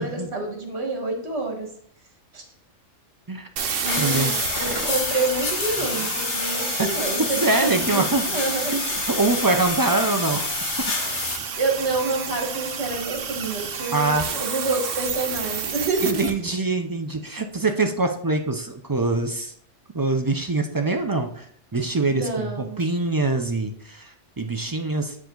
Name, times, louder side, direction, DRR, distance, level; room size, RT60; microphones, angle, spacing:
voice 1, 0.0-1.7 2.3-2.5 3.8-8.7 11.6-16.4 22.1-22.8 24.6-24.7, right 3 dB, 60° right, 2 dB, 1.9 m, -28 dB
sound 1, 3.6-16.3, right 6 dB, 80° right, 1.2 m, -31 dB
sound 2, 3.8-11.4, left 4 dB, 65° left, 1.3 m, -28 dB
voice 2, 4.0-4.3 6.8-8.2 8.7-10.5 13.9-14.3 16.0-19.5 19.9-21.5 21.7-25.2, right 3 dB, 35° right, 5 dB, 0.3 m, -24 dB
8.5 x 4.9 x 3.9 m, 0.63 s
omnidirectional pair, 1.3 m